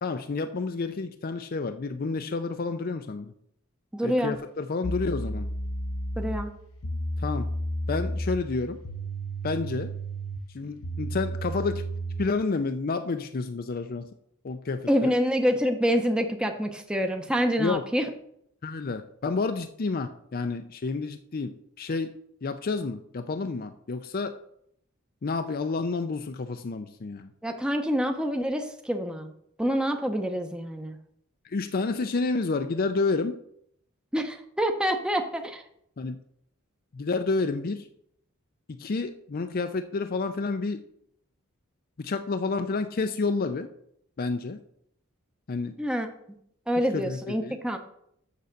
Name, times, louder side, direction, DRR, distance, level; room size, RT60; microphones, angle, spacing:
voice 1, 0.0-3.3 4.0-5.5 7.2-7.5 7.9-8.8 9.4-9.9 10.5-11.8 12.2-14.1 14.4-15.2 17.6-17.8 18.6-22.1 22.4-24.4 25.2-27.3 31.4-33.4 36.0-36.2 36.9-37.9 38.7-40.8 42.0-43.7 44.2-44.6 45.5-45.7 46.9-47.6, left 3 dB, 45° left, 8 dB, 0.5 m, -30 dB
voice 2, 3.9-4.4 6.2-6.5 14.9-18.0 27.4-29.3 29.6-31.0 34.1-35.6 45.8-46.1 46.7-47.8, equal, 5° right, 5 dB, 0.7 m, -26 dB
sound 1, 4.8-12.4, right 1 dB, 65° left, 0.8 m, -33 dB
7.0 x 6.7 x 6.4 m, 0.72 s
head